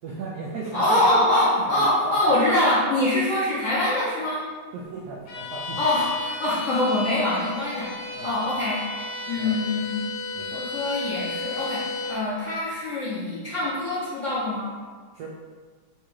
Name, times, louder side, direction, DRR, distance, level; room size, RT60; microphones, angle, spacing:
voice 1, 0.0-2.3 4.7-5.8 8.1-8.3 9.4-9.6 10.3-10.7 15.1-15.3, right 3 dB, 80° right, -4 dB, 0.8 m, -35 dB
voice 2, 0.7-4.4 5.8-7.9 8.2-8.8 9.3-10.0 10.5-11.8 12.1-14.7, left 1 dB, 50° left, -9 dB, 1.0 m, -24 dB
Bowed string instrument, 5.3-12.3, left 3 dB, 85° left, 1.5 m, -33 dB
4.1 x 2.4 x 4.5 m, 1.5 s
omnidirectional pair, 2.4 m